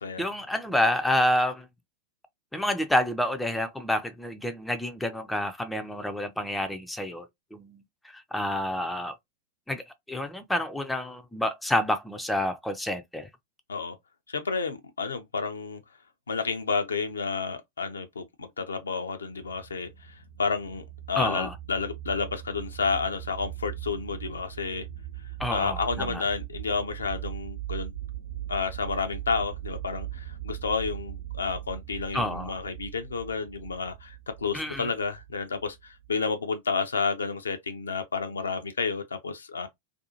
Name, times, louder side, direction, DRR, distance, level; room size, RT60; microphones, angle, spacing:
voice 1, 0.2-1.7 2.5-7.3 7.5-7.8 8.0-9.1 9.7-9.8 10.1-13.3 21.2-21.5 25.4-26.2 32.1-32.6 34.5-34.9, left 1 dB, 5° left, 0.4 m, -28 dB
voice 2, 14.3-15.8 16.3-24.9 25.5-27.9 28.5-39.7, left 5 dB, 70° left, 0.5 m, -31 dB
sound 1, 19.3-36.3, right 13 dB, 70° right, 0.7 m, -40 dB
2.6 x 2.3 x 2.7 m
figure-of-eight pair, 90°, 0 cm